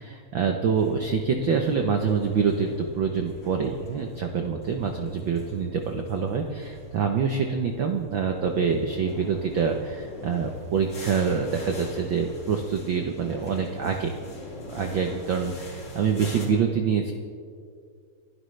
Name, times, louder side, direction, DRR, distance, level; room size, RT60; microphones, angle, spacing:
voice 1, 0.0-14.2 14.7-17.1, right 6 dB, 90° right, 4 dB, 1.0 m, -26 dB
sound 1, 0.8-16.5, left 1 dB, 40° left, 3.6 m, -43 dB
29.5 x 11.5 x 3.3 m, 2.3 s
omnidirectional pair, 3.4 m